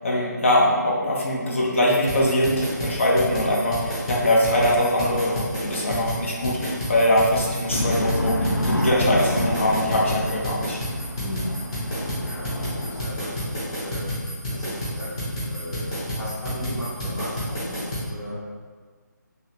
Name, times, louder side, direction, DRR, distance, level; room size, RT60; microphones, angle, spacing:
voice 1, 0.0-10.8, left 1 dB, 40° left, -3 dB, 0.5 m, -22 dB
sound 1, 2.1-18.1, equal, 20° left, 0.9 m, -30 dB
sound 2, 7.7-13.1, equal, 85° left, 0.6 m, -28 dB
voice 2, 11.2-11.5 11.8-14.2 14.5-17.8 18.1-18.4, equal, 10° right, -12 dB, 0.5 m, -37 dB
2.8 x 2.7 x 3.3 m, 1.5 s
figure-of-eight pair, 150°, 10 cm